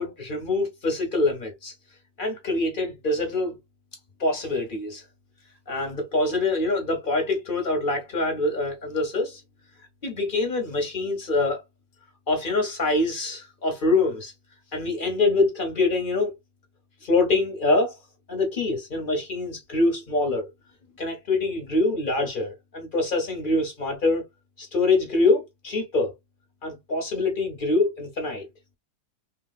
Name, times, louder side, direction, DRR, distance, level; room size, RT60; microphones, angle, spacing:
voice 1, 0.0-1.7 2.2-3.6 4.2-5.0 5.7-9.4 10.0-11.6 12.3-14.3 14.7-16.3 17.0-17.9 18.3-20.4 21.0-24.2 24.6-26.1 26.6-28.4, left 2 dB, 45° left, 0.8 m, -25 dB
2.9 x 2.9 x 2.3 m
omnidirectional pair, 1.8 m